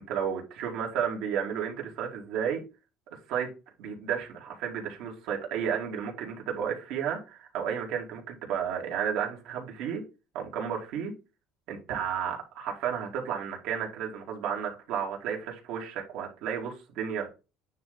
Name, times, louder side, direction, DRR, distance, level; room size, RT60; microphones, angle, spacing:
voice 1, 0.1-2.6 3.3-3.5 3.8-10.0 10.3-11.1 11.7-17.3, right 8 dB, 75° right, 2.5 m, -32 dB
9.3 x 3.3 x 3.9 m
cardioid pair, 115°, 0 cm